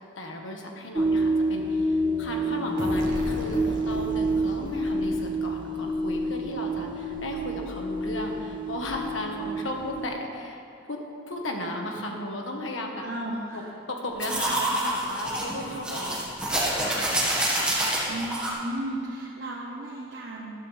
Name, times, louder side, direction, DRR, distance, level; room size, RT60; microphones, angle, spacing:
voice 1, 0.1-11.0 11.3-13.0 13.5-13.6 13.9-17.1, left 1 dB, 85° left, 1 dB, 1.5 m, -35 dB
sound 1, 1.0-10.1, right 1 dB, 25° right, 0.4 m, -28 dB
sound 2, 2.8-6.4, right 1 dB, 85° right, 1.4 m, -37 dB
voice 2, 13.0-13.7 18.1-20.5, right 1 dB, 65° right, -3 dB, 1.1 m, -34 dB
sound 3, 14.2-18.5, right 1 dB, 5° right, 1.6 m, -27 dB
14.0 x 12.0 x 3.4 m, 2.5 s
head